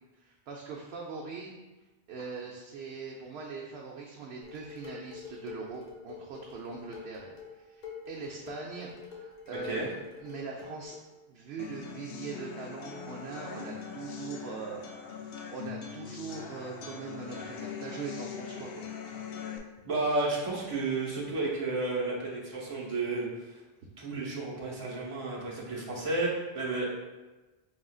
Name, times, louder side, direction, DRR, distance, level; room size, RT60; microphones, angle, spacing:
voice 1, 0.2-1.5 2.1-7.3 7.7-11.0 11.3-18.9, right 5 dB, 90° right, -2 dB, 0.8 m, -42 dB
Dishes pots and pans, 4.4-11.0, left 6 dB, 45° left, 0.9 m, -46 dB
sound 1, 11.6-19.6, left 6 dB, 75° left, 0.8 m, -41 dB
voice 2, 19.8-23.6 24.0-26.9, right 2 dB, 35° right, -4 dB, 1.0 m, -32 dB
4.9 x 3.7 x 2.3 m, 1.1 s
omnidirectional pair, 1.0 m